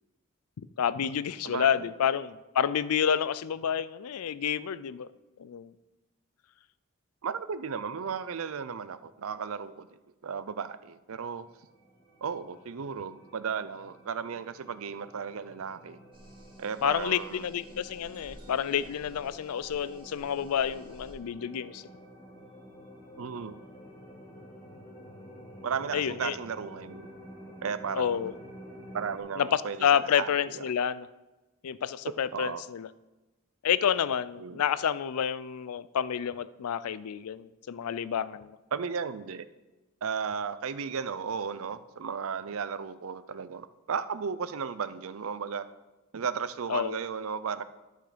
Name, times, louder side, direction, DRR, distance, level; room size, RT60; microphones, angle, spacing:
voice 1, 0.6-5.1 5.4-5.7 16.8-21.9 25.9-26.4 27.9-28.3 29.4-31.1 31.6-32.9 33.6-38.6 46.7-47.0, left 8 dB, 85° left, 16 dB, 0.4 m, -29 dB
voice 2, 1.4-1.9 7.2-9.9 10.2-11.5 12.2-16.0 16.6-17.4 23.2-23.6 25.6-27.1 27.6-28.3 28.9-30.6 32.3-32.6 34.4-34.6 38.7-39.5 40.0-45.7 46.1-47.6, right 6 dB, 70° right, 14 dB, 0.5 m, -35 dB
sound 1, 11.5-29.2, equal, 20° left, 1.5 m, -50 dB
sound 2, 16.1-21.1, equal, 25° right, 1.8 m, -54 dB
11.0 x 6.5 x 5.0 m, 1.1 s
head